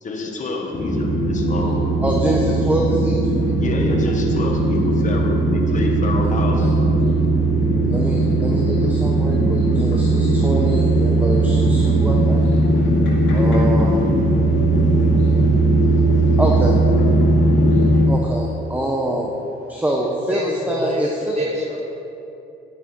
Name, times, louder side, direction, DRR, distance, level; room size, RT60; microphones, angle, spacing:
voice 1, 0.0-1.9 3.6-6.7, left 2 dB, 40° left, 0 dB, 1.8 m, -27 dB
sound 1, 0.7-18.0, right 2 dB, 65° left, 2.8 m, -18 dB
voice 2, 2.0-3.3 6.2-6.3 6.6-6.7 7.9-16.8 18.1-19.3 19.7-21.4, right 1 dB, 10° right, -1 dB, 1.2 m, -26 dB
voice 3, 20.3-21.8, right 1 dB, 35° right, -1 dB, 2.2 m, -27 dB
11.0 x 8.8 x 4.7 m, 2.9 s
cardioid pair, 90°, 20 cm